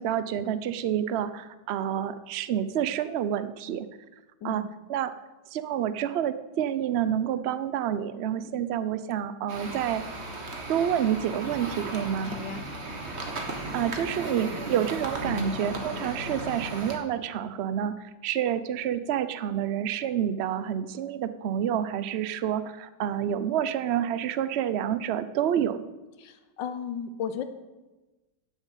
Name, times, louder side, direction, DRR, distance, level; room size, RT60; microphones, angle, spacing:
voice 1, 0.0-3.9 4.4-4.6 4.9-5.1 5.5-10.0 10.7-12.3 13.7-17.9 18.2-25.8, right 10 dB, 65° right, 12 dB, 0.6 m, -28 dB
voice 2, 4.4-4.7 12.2-12.7 26.2-27.4, left 7 dB, 90° left, 9 dB, 1.5 m, -35 dB
sound 1, 9.5-17.0, right 2 dB, 40° right, 1.7 m, -35 dB
12.0 x 7.3 x 8.3 m, 1.1 s
omnidirectional pair, 1.9 m